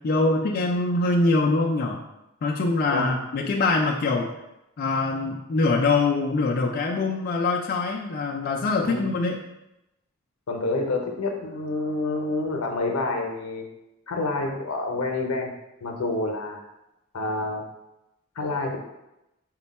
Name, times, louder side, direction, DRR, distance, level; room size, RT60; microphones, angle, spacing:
voice 1, 0.0-2.0 2.4-4.3 4.8-9.4, left 3 dB, 45° left, -1 dB, 0.3 m, -23 dB
voice 2, 10.5-13.6 14.1-15.5 15.8-16.6 17.1-17.6 18.4-18.8, left 2 dB, 85° left, 2 dB, 0.7 m, -28 dB
4.4 x 2.1 x 4.0 m, 0.92 s
head